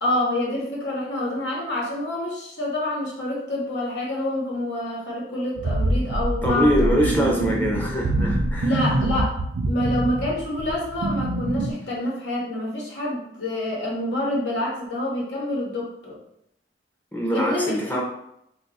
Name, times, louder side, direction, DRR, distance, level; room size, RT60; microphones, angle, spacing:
voice 1, 0.0-7.0 8.6-9.4 9.6-16.2 17.3-17.7, left 1 dB, 90° left, -3 dB, 0.9 m, -27 dB
sound 1, 5.6-11.7, right 2 dB, 75° right, 0.4 m, -25 dB
voice 2, 6.4-8.8 17.1-18.0, equal, 10° left, -2 dB, 0.5 m, -23 dB
2.7 x 2.3 x 4.0 m, 0.77 s
head